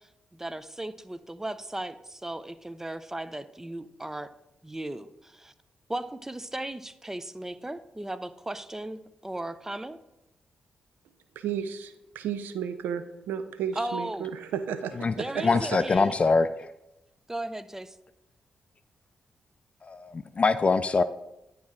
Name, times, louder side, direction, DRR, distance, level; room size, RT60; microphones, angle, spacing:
voice 1, 0.3-4.3 4.6-5.5 5.9-10.0 13.8-14.3 15.2-16.1 17.3-17.9, right 1 dB, 15° right, 13 dB, 0.6 m, -36 dB
voice 2, 11.4-15.8, right 8 dB, 85° right, 11 dB, 0.4 m, -33 dB
voice 3, 15.4-16.7 19.8-21.0, left 4 dB, 40° left, 13 dB, 0.4 m, -24 dB
10.5 x 4.2 x 3.7 m, 0.91 s
supercardioid pair, 45°, 3 cm